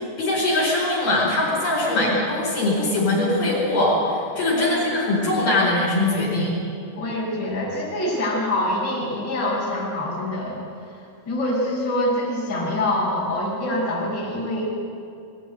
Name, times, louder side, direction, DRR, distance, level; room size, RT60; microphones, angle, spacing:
voice 1, 0.2-6.6, left 2 dB, 45° left, -4 dB, 6.3 m, -22 dB
voice 2, 6.9-10.6 10.9-14.7, left 1 dB, 20° left, -6 dB, 5.0 m, -25 dB
21.5 x 15.5 x 9.2 m, 2.5 s
omnidirectional pair, 5.9 m